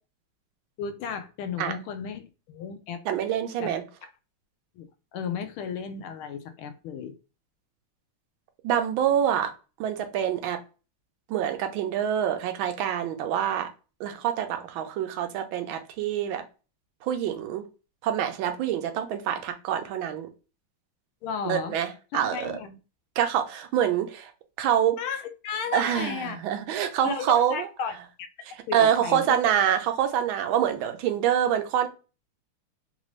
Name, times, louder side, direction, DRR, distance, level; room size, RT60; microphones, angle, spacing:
voice 1, 0.8-3.0 3.6-3.7 4.0-4.1 4.7-7.1 21.2-21.8 22.1-22.8 25.0-26.4 27.0-28.3 28.7-29.4, left 7 dB, 80° left, 8 dB, 1.4 m, -34 dB
voice 2, 3.1-3.8 8.6-9.5 9.8-10.6 11.3-13.7 14.0-16.4 17.0-17.6 18.0-20.3 21.4-21.9 22.1-22.5 23.2-24.3 24.6-25.0 25.7-27.7 28.7-31.9, right 9 dB, 75° right, 7 dB, 1.3 m, -26 dB
3.9 x 2.5 x 3.0 m, 0.32 s
omnidirectional pair, 2.4 m